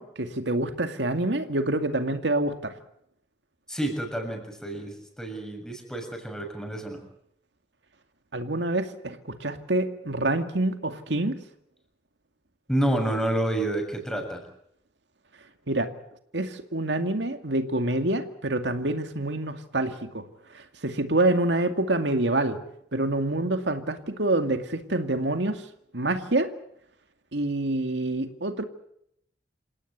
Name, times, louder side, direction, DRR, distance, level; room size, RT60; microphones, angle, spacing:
voice 1, 0.0-2.8 8.3-11.4 15.7-15.9 16.3-20.2 20.5-22.6 22.9-25.7 25.9-26.5 27.3-28.6, right 2 dB, 90° right, 7 dB, 2.2 m, -27 dB
voice 2, 3.7-7.0 12.7-14.4, right 1 dB, 5° left, 4 dB, 7.1 m, -29 dB
28.0 x 17.5 x 8.1 m, 0.74 s
head